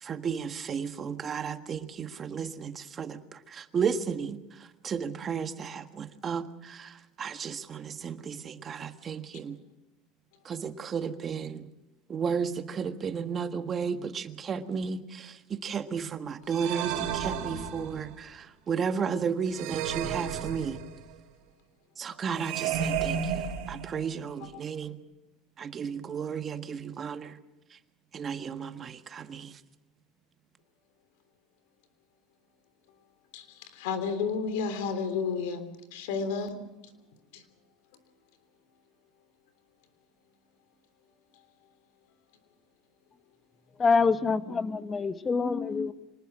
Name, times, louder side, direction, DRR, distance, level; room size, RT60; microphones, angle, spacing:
voice 1, 0.0-9.6 10.4-11.7 12.1-20.8 22.0-25.0 25.6-27.4 27.7-27.8 28.1-29.6, right 6 dB, 30° right, 9 dB, 1.6 m, -33 dB
sound 1, 16.5-18.2 19.5-21.1 22.4-24.2, right 8 dB, 70° right, 3.4 m, -33 dB
voice 2, 33.3-36.6 37.3-37.4, left 5 dB, 80° left, 11 dB, 3.2 m, -32 dB
voice 3, 43.8-45.9, left 4 dB, 25° left, 11 dB, 1.3 m, -26 dB
26.0 x 19.5 x 6.2 m, 0.98 s
supercardioid pair, 115°, 0 cm